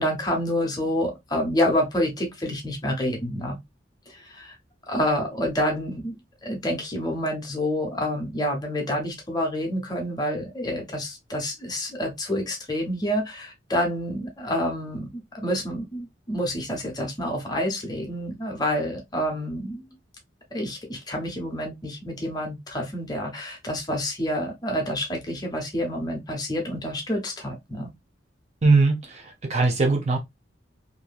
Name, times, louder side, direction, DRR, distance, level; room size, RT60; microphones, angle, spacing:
voice 1, 0.0-3.6 4.1-4.6 4.9-6.2 6.4-19.9 20.5-27.9, equal, 20° left, 0.9 m, -28 dB
voice 2, 28.6-30.2, right 3 dB, 35° right, 0.6 m, -21 dB
2.9 x 2.7 x 2.2 m
head